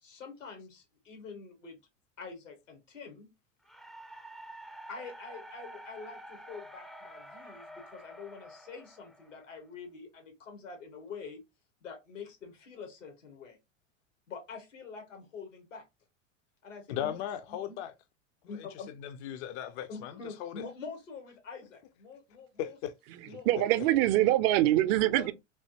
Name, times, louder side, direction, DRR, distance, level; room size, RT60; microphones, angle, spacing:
voice 1, 0.0-1.8 2.2-3.3 4.9-11.4 11.8-13.6 14.3-15.8 16.6-17.2 17.7-17.8 18.5-18.9 19.9-22.8 23.2-23.9 25.1-25.3, left 5 dB, 90° left, 1.4 m, -46 dB
sound 1, 3.6-9.8, right 1 dB, ahead, 0.3 m, -49 dB
voice 2, 16.9-17.9 18.4-18.7 19.0-20.7 22.6-22.9, left 10 dB, 60° left, 0.5 m, -37 dB
voice 3, 23.1-25.3, right 15 dB, 55° right, 0.5 m, -25 dB
3.4 x 2.7 x 2.8 m
hypercardioid pair, 95°, 37 cm